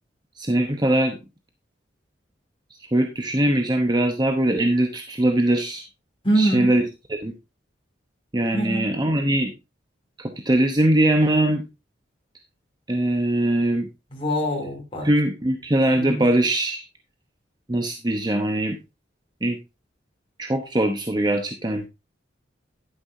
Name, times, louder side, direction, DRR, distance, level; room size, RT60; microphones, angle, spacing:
voice 1, 0.4-1.2 2.9-5.8 6.4-6.8 7.1-7.3 8.3-9.5 10.2-11.6 12.9-13.9 15.0-16.8 17.7-18.8 19.4-19.6 20.4-21.9, right 1 dB, 20° right, 4 dB, 0.9 m, -21 dB
voice 2, 6.2-6.7 8.5-8.9 14.1-15.1 15.9-16.3, right 1 dB, 30° left, -1 dB, 2.9 m, -24 dB
11.0 x 9.6 x 2.7 m, 0.26 s
head